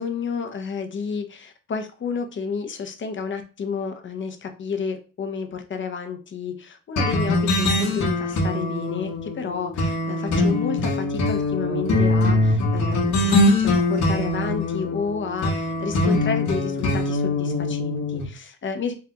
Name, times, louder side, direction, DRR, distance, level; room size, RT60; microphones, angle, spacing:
voice 1, 0.0-18.9, left 5 dB, 40° left, 7 dB, 0.7 m, -31 dB
sound 1, 7.0-18.2, left 2 dB, 65° left, 1.1 m, -22 dB
3.4 x 2.4 x 2.9 m, 0.34 s
cardioid pair, 90°, 30 cm